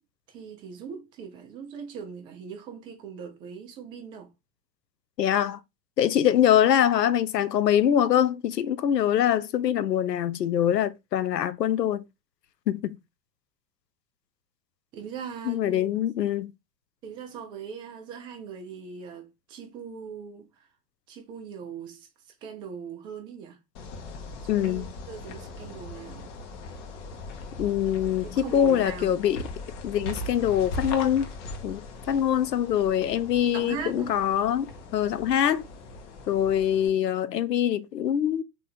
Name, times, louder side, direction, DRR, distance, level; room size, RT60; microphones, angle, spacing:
voice 1, 0.3-4.3 14.9-16.0 17.0-20.4 21.1-22.1 22.4-23.6 24.4-26.3 28.3-29.2 33.0-33.1 33.5-34.2, right 6 dB, 10° right, 0.3 m, -40 dB
voice 2, 5.2-5.6 6.0-12.1 12.7-13.0 15.5-16.5 24.5-24.9 27.6-29.5 29.8-31.3 31.6-35.6 36.3-38.4, left 10 dB, 80° left, 0.6 m, -24 dB
sound 1, 23.8-36.9, left 2 dB, 45° left, 1.0 m, -39 dB
3.6 x 2.9 x 4.2 m
figure-of-eight pair, 90°, 49 cm